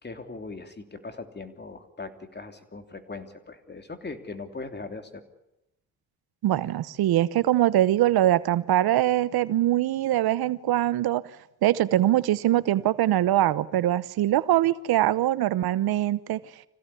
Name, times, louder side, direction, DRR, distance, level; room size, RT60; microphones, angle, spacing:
voice 1, 0.0-5.2, left 3 dB, 25° left, 7 dB, 3.2 m, -39 dB
voice 2, 6.4-11.2 11.6-16.4, right 13 dB, 75° right, 17 dB, 1.0 m, -23 dB
25.5 x 16.5 x 9.9 m, 0.89 s
cardioid pair, 80°, 38 cm